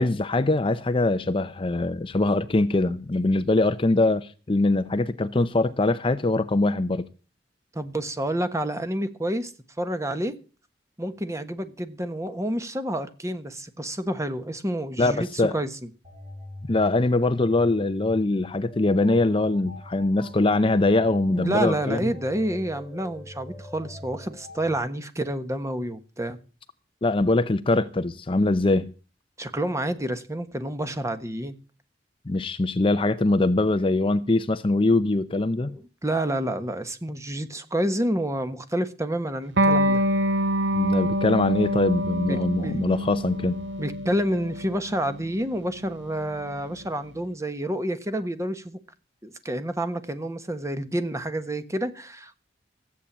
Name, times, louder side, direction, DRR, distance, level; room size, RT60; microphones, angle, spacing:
voice 1, 0.0-7.1 15.0-15.5 16.7-22.1 27.0-28.9 32.3-35.7 40.7-43.6, left 2 dB, 30° left, 0.6 m, -22 dB
voice 2, 7.7-9.5 9.8-10.3 11.0-15.9 21.3-26.4 29.4-31.5 35.6-40.0 42.2-42.8 43.8-48.8 49.2-52.4, right 1 dB, 15° right, 1.3 m, -29 dB
sound 1, 16.0-24.8, left 1 dB, 40° right, 4.6 m, -43 dB
Electric guitar, 39.6-46.7, equal, 75° right, 1.6 m, -26 dB
14.5 x 8.5 x 7.3 m
head